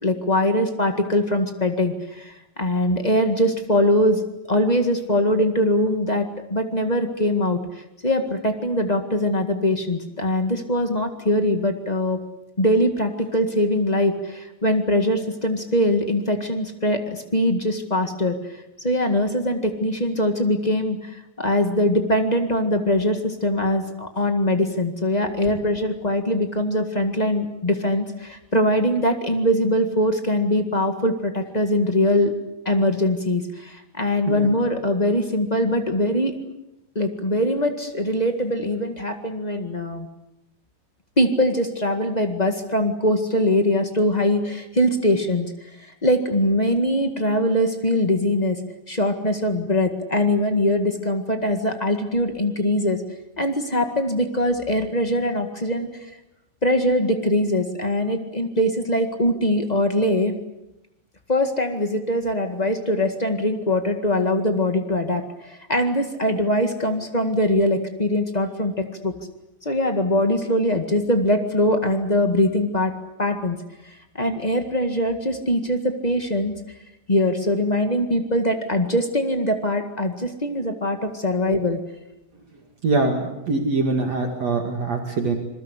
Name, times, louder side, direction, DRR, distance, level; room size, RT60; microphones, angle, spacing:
voice 1, 0.0-12.2 12.6-32.3 32.6-36.4 36.9-40.1 41.2-45.5 46.0-48.6 48.9-53.0 53.4-55.9 56.6-60.3 61.3-69.2 69.6-72.9 73.2-73.6 73.8-76.5 77.1-81.8, left 1 dB, 35° left, 6 dB, 0.6 m, -22 dB
voice 2, 82.8-85.4, right 3 dB, 50° right, 3 dB, 3.1 m, -23 dB
27.0 x 22.0 x 8.3 m, 0.90 s
omnidirectional pair, 4.2 m